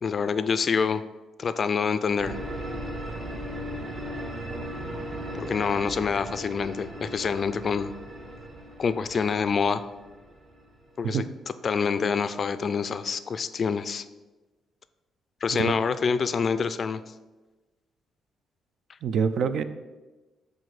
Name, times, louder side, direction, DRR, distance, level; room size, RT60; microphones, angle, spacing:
voice 1, 0.0-1.0 1.4-2.4 5.4-7.9 8.8-9.8 11.0-11.2 11.6-14.0 15.4-17.0, left 5 dB, 45° left, 12 dB, 0.3 m, -26 dB
sound 1, 2.2-11.0, equal, 45° right, 0.9 m, -37 dB
voice 2, 19.0-19.6, right 6 dB, 65° right, 12 dB, 0.4 m, -26 dB
7.4 x 2.6 x 4.9 m, 1.2 s
cardioid pair, 90°, 0 cm